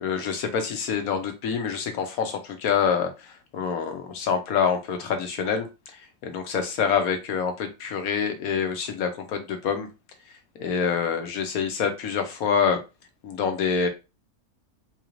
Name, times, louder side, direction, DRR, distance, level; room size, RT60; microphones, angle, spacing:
voice 1, 0.0-9.9 10.5-12.8 13.2-13.9, left 6 dB, 80° left, 1.2 m, -26 dB
4.0 x 2.5 x 3.0 m
omnidirectional pair, 1.5 m